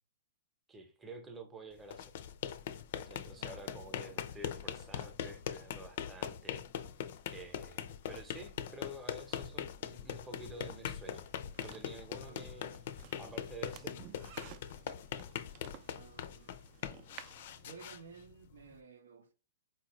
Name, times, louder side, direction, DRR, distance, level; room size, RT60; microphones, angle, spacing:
voice 1, 0.7-2.1 3.0-6.6 7.3-11.3 11.6-12.8 13.2-14.0, right 1 dB, 10° right, 0.8 m, -49 dB
sound 1, 1.8-18.8, left 9 dB, 60° left, 0.4 m, -42 dB
voice 2, 3.3-4.2 12.1-12.7 13.8-14.0 15.9-16.6 17.6-19.3, right 5 dB, 85° right, 0.7 m, -56 dB
sound 2, 10.8-17.7, right 10 dB, 45° right, 0.5 m, -56 dB
4.4 x 2.4 x 3.0 m
hypercardioid pair, 135°, 0 cm